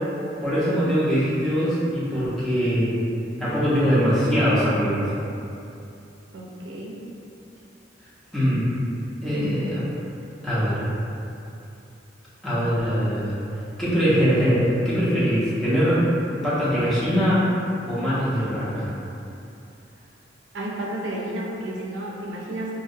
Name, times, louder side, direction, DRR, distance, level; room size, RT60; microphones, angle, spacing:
voice 1, 0.4-3.0 3.4-5.0 8.3-8.6 9.2-9.8 10.4-10.9 12.4-13.4 13.8-16.0 16.4-17.4 17.8-18.9, equal, ahead, -12 dB, 0.5 m, -22 dB
voice 2, 6.3-7.0 20.5-22.7, right 1 dB, 85° right, -3 dB, 0.4 m, -32 dB
2.5 x 2.0 x 2.6 m, 2.7 s
head